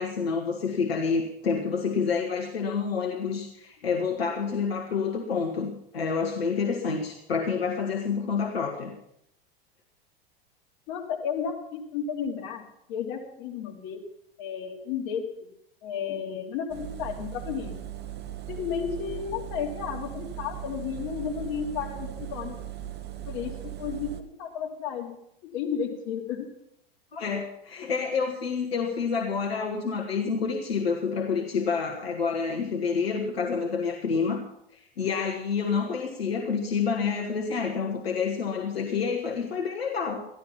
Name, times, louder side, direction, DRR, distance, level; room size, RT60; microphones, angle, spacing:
voice 1, 0.0-8.9 27.1-34.4 34.7-40.3, left 5 dB, 75° left, 2 dB, 1.8 m, -28 dB
voice 2, 10.9-12.6 12.9-14.0 14.4-15.5 15.8-17.8 18.5-22.7 23.3-25.1 25.4-26.5 27.8-27.9, left 7 dB, 50° left, 1 dB, 3.0 m, -33 dB
Engine, 16.7-24.2, right 11 dB, 35° right, 1.4 m, -38 dB
14.0 x 12.0 x 5.8 m, 0.76 s
figure-of-eight pair, 90°, 31 cm